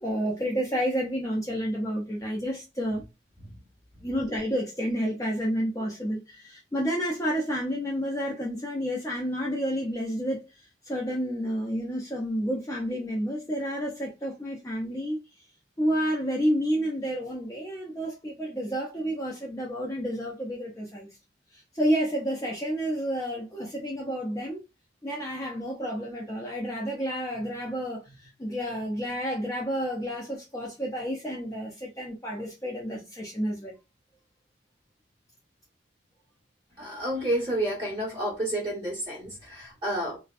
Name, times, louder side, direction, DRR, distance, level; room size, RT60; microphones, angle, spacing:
voice 1, 0.0-3.0 4.0-10.4 10.8-15.2 15.8-21.1 21.5-24.6 25.0-33.7, equal, 15° left, 0.5 m, -30 dB
voice 2, 36.8-40.2, right 1 dB, 25° right, 1.4 m, -30 dB
2.5 x 2.1 x 2.4 m
head